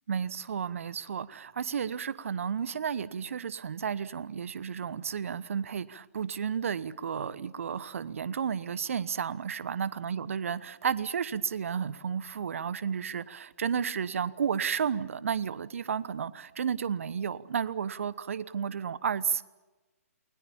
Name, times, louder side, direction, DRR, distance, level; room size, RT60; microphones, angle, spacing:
voice 1, 0.1-19.4, right 7 dB, 55° right, 17 dB, 1.1 m, -32 dB
29.0 x 21.5 x 7.2 m, 1.2 s
figure-of-eight pair, 135°, 9 cm